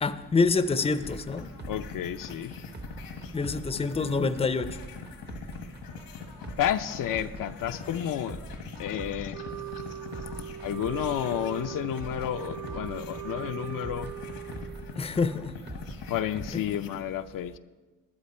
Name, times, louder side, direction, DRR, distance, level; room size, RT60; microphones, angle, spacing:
voice 1, 0.0-1.5 3.3-4.7 15.0-15.5 16.5-16.6, left 4 dB, 15° left, 11 dB, 0.6 m, -26 dB
sound 1, 0.6-17.0, left 5 dB, 90° left, 1.5 m, -43 dB
sound 2, 1.0-16.5, right 3 dB, 30° right, 0.9 m, -45 dB
voice 2, 1.7-2.5 6.6-8.4 8.8-9.5 10.6-14.1 16.1-17.6, left 11 dB, 65° left, 9 dB, 0.6 m, -31 dB
Wind instrument woodwind instrument, 9.3-15.0, right 12 dB, 65° right, 0.5 m, -40 dB
11.5 x 11.5 x 4.3 m, 1.3 s
cardioid pair, 85°, 35 cm